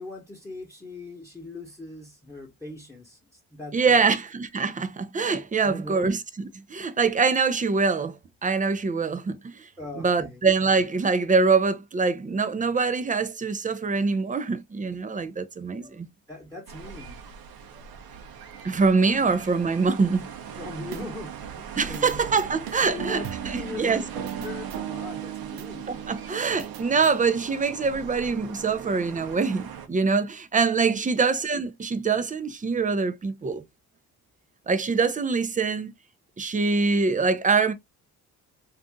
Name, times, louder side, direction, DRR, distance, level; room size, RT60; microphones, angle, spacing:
voice 1, 0.0-4.1 5.6-6.1 9.8-10.4 15.7-16.0 16.3-17.2 19.2-19.3 20.6-22.2 22.8-26.0, left 2 dB, 10° left, 1.1 m, -40 dB
voice 2, 3.7-6.2 6.7-9.7 10.0-16.1 18.6-20.3 21.8-24.0 26.1-33.6 34.7-35.9 36.4-37.7, right 4 dB, 20° right, 0.5 m, -24 dB
sound 1, 16.7-29.9, right 7 dB, 65° right, 0.8 m, -41 dB
sound 2, 20.5-21.4 21.9-27.2, right 10 dB, 90° right, 0.6 m, -38 dB
2.7 x 2.5 x 3.5 m
cardioid pair, 70°, 39 cm